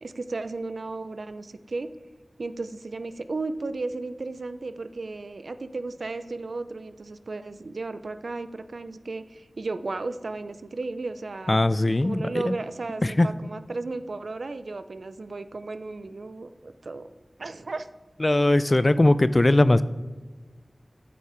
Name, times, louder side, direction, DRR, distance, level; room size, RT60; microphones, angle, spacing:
voice 1, 0.0-1.9 2.4-11.6 12.0-17.1 17.4-17.9, right 3 dB, 80° right, 11 dB, 0.4 m, -34 dB
voice 2, 11.5-12.6 13.0-13.3 18.2-19.8, left 1 dB, 35° left, 15 dB, 0.3 m, -20 dB
7.9 x 5.4 x 5.0 m, 1.3 s
wide cardioid pair, 65°, 0 cm